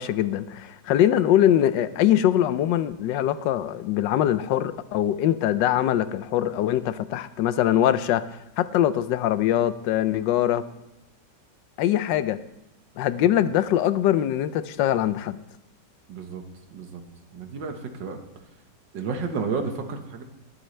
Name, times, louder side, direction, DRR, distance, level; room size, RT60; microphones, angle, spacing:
voice 1, 0.0-8.2 8.6-10.6 11.8-12.4 13.0-15.4, left 11 dB, 90° left, 13 dB, 1.3 m, -22 dB
voice 2, 16.1-16.4 16.7-17.0 17.3-18.2 18.9-20.2, right 5 dB, 85° right, 5 dB, 1.9 m, -31 dB
22.5 x 7.9 x 3.3 m, 0.90 s
omnidirectional pair, 1.9 m